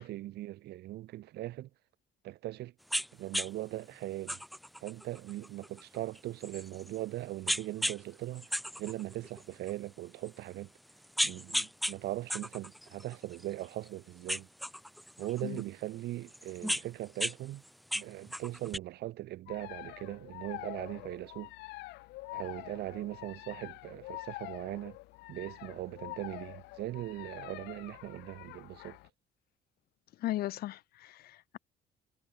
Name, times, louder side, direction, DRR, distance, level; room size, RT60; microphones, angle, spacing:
voice 1, 0.0-1.7 2.2-2.7 3.2-4.4 4.8-8.5 8.8-10.7 11.2-14.5 15.2-17.6 17.9-21.5 22.3-25.0 25.3-29.0, right 15 dB, 75° right, 4.1 m, -40 dB
sound 1, 2.9-3.1 3.3-3.5 4.3-7.0 7.5-8.0 8.3-9.7 10.3-10.4 10.9-11.9 12.3-13.9 14.3-15.6 16.3-17.3 17.6-18.8, equal, ahead, 1.6 m, -35 dB
sound 2, 19.5-29.1, left 20 dB, 90° left, 3.4 m, -46 dB
voice 2, 30.2-31.6, left 15 dB, 65° left, 0.7 m, -37 dB
cardioid pair, 110°, 17 cm